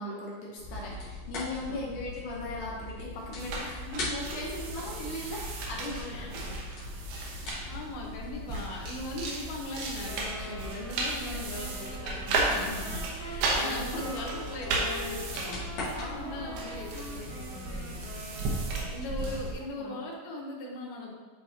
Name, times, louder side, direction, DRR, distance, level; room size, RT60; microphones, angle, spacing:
voice 1, 0.0-6.6 7.1-7.7 13.5-14.1 14.6-14.8 15.9-16.6 19.6-20.0, left 2 dB, 70° left, -3 dB, 2.3 m, -39 dB
sound 1, 0.6-19.4, left 2 dB, 55° left, 2.7 m, -41 dB
voice 2, 1.6-1.9 6.1-6.3 7.3-7.4 7.7-18.1 18.8-21.1, left 2 dB, 85° left, -2 dB, 3.1 m, -40 dB
sound 2, 3.4-19.5, right 3 dB, 85° right, 2.9 m, -35 dB
Wind instrument woodwind instrument, 10.0-19.1, left 1 dB, 65° right, 0.8 m, -44 dB
10.5 x 4.6 x 2.9 m, 1.4 s
omnidirectional pair, 4.2 m